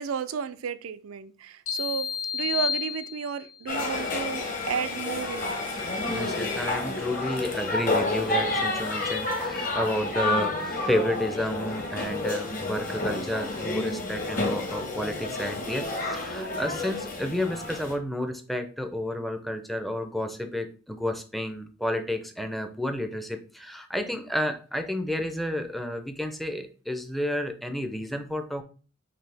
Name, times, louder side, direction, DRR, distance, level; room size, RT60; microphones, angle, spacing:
voice 1, 0.0-2.1 2.3-5.7, right 7 dB, 90° right, 0.4 m, -33 dB
sound 1, 1.7-3.6, left 7 dB, 85° left, 2.6 m, -31 dB
sound 2, 3.7-17.9, left 2 dB, 40° left, 1.1 m, -30 dB
voice 2, 6.1-28.6, left 1 dB, ahead, 0.4 m, -31 dB
5.9 x 2.7 x 3.3 m
head